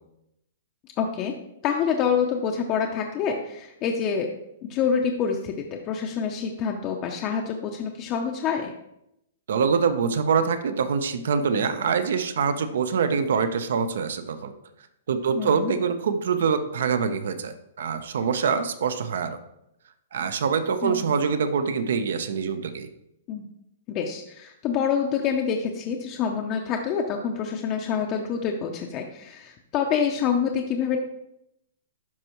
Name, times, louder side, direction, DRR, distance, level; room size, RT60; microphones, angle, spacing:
voice 1, 1.0-1.3 1.6-4.3 4.6-8.7 15.4-15.7 20.8-21.1 23.3-23.5 23.9-31.0, left 7 dB, 25° left, 2 dB, 0.6 m, -27 dB
voice 2, 9.5-14.5 15.1-19.4 20.1-22.9, right 6 dB, 70° right, 10 dB, 0.7 m, -25 dB
11.5 x 4.6 x 3.0 m, 0.82 s
hypercardioid pair, 160°, 0 cm